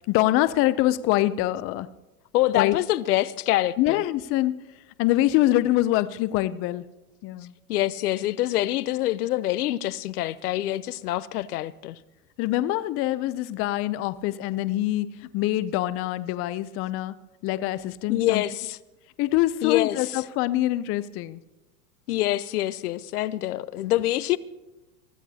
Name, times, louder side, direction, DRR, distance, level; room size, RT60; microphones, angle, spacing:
voice 1, 0.1-1.9 2.5-2.8 3.8-4.6 5.0-6.8 7.2-7.5 12.4-17.1 17.4-18.4 19.2-21.4, left 15 dB, 30° left, 0.5 m, -24 dB
voice 2, 2.3-4.0 7.7-12.0 18.1-18.8 19.6-20.1 22.1-24.4, left 15 dB, 90° left, 0.7 m, -25 dB
24.0 x 14.5 x 2.8 m
supercardioid pair, 130°, 44 cm